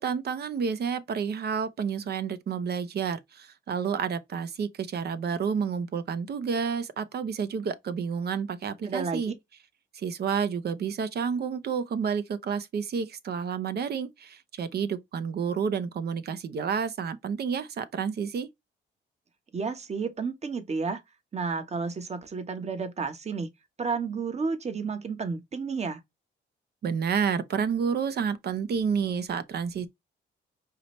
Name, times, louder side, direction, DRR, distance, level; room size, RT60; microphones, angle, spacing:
voice 1, 0.0-9.3 9.9-18.5 26.8-29.9, right 6 dB, 55° right, 0.8 m, -30 dB
voice 2, 8.8-9.2 19.5-21.0 21.3-23.5 23.8-26.0, right 4 dB, 35° right, 1.1 m, -31 dB
4.9 x 2.9 x 3.1 m
cardioid pair, 90°, 20 cm